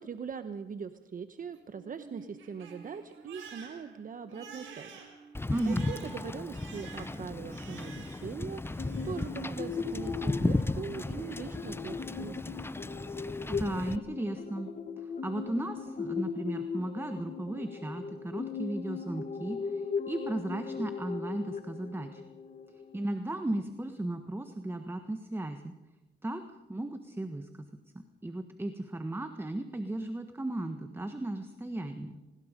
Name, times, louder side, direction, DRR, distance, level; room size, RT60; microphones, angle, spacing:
voice 1, 0.0-5.0 5.6-12.4, right 6 dB, 45° right, 10 dB, 1.1 m, -41 dB
Crying sobbing, 1.5-8.4 8.7-9.3, right 5 dB, 80° right, 5.7 m, -51 dB
Wind / Boat Water vehicle, 5.3-14.0, left 2 dB, 10° left, 0.8 m, -35 dB
voice 2, 5.5-5.9 13.5-14.7 15.0-22.2 22.7-25.8 26.2-26.4 26.7-27.7 28.2-32.2, right 1 dB, 10° right, 7 dB, 1.4 m, -35 dB
sound 1, 8.8-23.2, left 5 dB, 40° left, 1.7 m, -38 dB
26.0 x 20.0 x 5.2 m, 1.1 s
cardioid pair, 90°, 20 cm